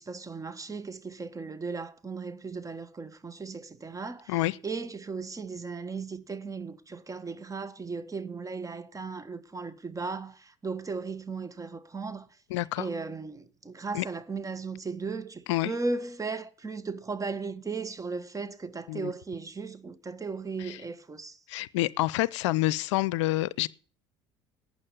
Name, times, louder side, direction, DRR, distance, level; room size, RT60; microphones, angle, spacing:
voice 1, 0.0-12.3 12.8-21.4, right 4 dB, 20° right, 1.5 m, -36 dB
voice 2, 12.5-12.9 13.9-14.0 15.5-15.7 18.9-19.1 20.7-20.8 21.5-23.7, left 17 dB, 75° left, 0.5 m, -27 dB
12.0 x 9.2 x 7.0 m
hypercardioid pair, 65°, 15 cm